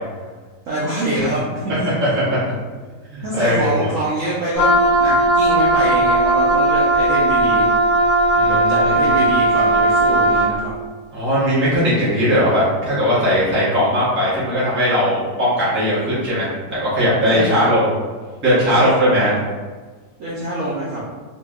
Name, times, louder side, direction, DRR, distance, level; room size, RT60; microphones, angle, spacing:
voice 1, 0.7-2.2 3.2-7.7 8.5-10.7 17.3-17.7 18.7-19.3 20.2-21.0, right 1 dB, 70° right, -7 dB, 0.8 m, -25 dB
voice 2, 1.8-2.4 3.1-3.9 8.3-9.1 11.1-17.9 18.4-19.3, equal, 15° right, -9 dB, 0.4 m, -18 dB
Wind instrument woodwind instrument, 4.6-10.6, right 2 dB, 70° left, 1.0 m, -16 dB
2.8 x 2.6 x 2.3 m, 1.4 s
omnidirectional pair, 1.9 m